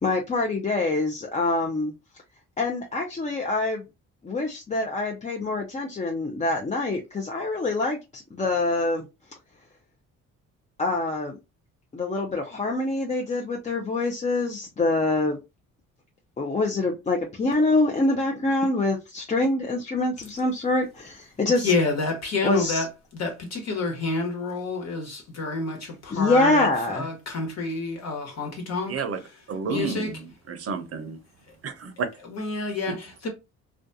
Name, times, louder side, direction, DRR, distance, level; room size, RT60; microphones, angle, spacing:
voice 1, 0.0-1.9 2.6-3.8 4.2-9.1 10.8-11.4 11.9-15.4 16.4-21.7 22.4-22.8 26.1-27.1, left 2 dB, 25° left, 0.5 m, -25 dB
voice 2, 21.6-29.0 29.7-30.2 32.2-33.3, left 3 dB, 60° left, 1.2 m, -29 dB
voice 3, 29.5-31.2 31.6-32.1 32.9-33.0, right 5 dB, 50° right, 0.6 m, -31 dB
2.4 x 2.3 x 2.6 m
cardioid pair, 90°, 30 cm